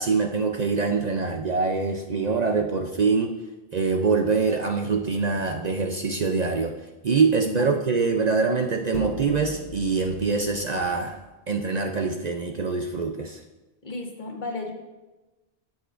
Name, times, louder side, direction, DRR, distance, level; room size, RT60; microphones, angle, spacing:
voice 1, 0.0-3.3 3.7-6.7 7.0-11.2 11.5-13.4, right 4 dB, 50° right, 4 dB, 0.6 m, -24 dB
sound 1, 4.9-5.3 8.9-11.3, equal, 70° left, 1.2 m, -39 dB
voice 2, 7.4-7.8 13.8-14.7, left 2 dB, 50° left, 1 dB, 1.3 m, -33 dB
14.5 x 6.8 x 2.5 m, 1.1 s
omnidirectional pair, 1.1 m